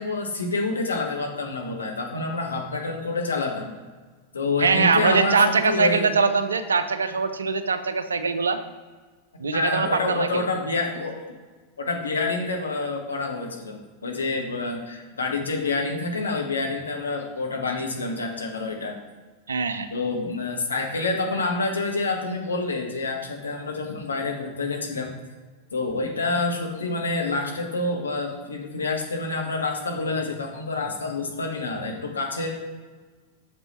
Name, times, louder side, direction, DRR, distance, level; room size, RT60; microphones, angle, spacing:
voice 1, 0.0-3.7 4.3-6.1 9.5-11.2 11.8-18.9 19.9-25.1 25.7-32.5, left 3 dB, 75° left, 1 dB, 1.3 m, -27 dB
voice 2, 4.6-8.6 9.4-10.5 19.5-19.9, right 4 dB, 70° right, 10 dB, 0.6 m, -22 dB
7.1 x 5.3 x 4.3 m, 1.4 s
figure-of-eight pair, 90°, 0 cm